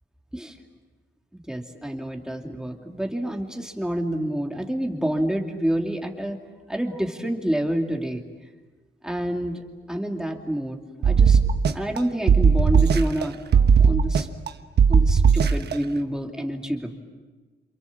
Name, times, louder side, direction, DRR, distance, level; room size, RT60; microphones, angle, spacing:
voice 1, 1.3-6.4 6.7-8.2 9.0-11.4 11.7-13.4 13.8-14.3 14.9-17.0, right 1 dB, 5° right, 1 dB, 2.6 m, -28 dB
sound 1, 11.0-12.0 12.3-13.2 13.5-14.5 14.8-15.7, right 6 dB, 65° right, 1.2 m, -17 dB
29.0 x 27.5 x 7.4 m, 1.3 s
wide cardioid pair, 150°, 19 cm